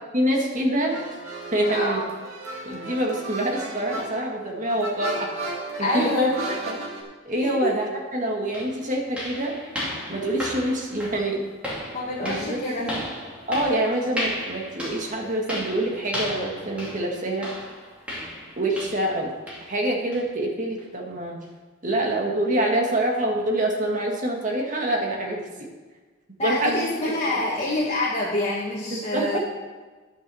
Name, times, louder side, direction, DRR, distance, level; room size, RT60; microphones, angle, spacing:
voice 1, 0.1-1.0 1.5-2.0 2.7-5.5 5.8-6.9 7.3-9.6 10.1-11.5 12.2-13.0 13.5-17.5 18.6-19.3 19.7-21.4 21.8-25.4 26.4-27.4 28.9-29.4, right 1 dB, 40° right, 0 dB, 1.8 m, -26 dB
sound 1, 0.8-7.0, right 2 dB, 70° right, 2.3 m, -34 dB
voice 2, 1.7-2.0 5.8-6.3 7.4-7.7 11.9-13.0 26.4-29.4, left 1 dB, 30° left, -7 dB, 1.9 m, -26 dB
sound 2, 8.0-8.1 8.5-19.2 19.5-19.8 20.1-20.3 20.8-20.9 21.4-21.5, equal, 5° right, 2.6 m, -35 dB
11.0 x 6.2 x 6.3 m, 1.3 s
head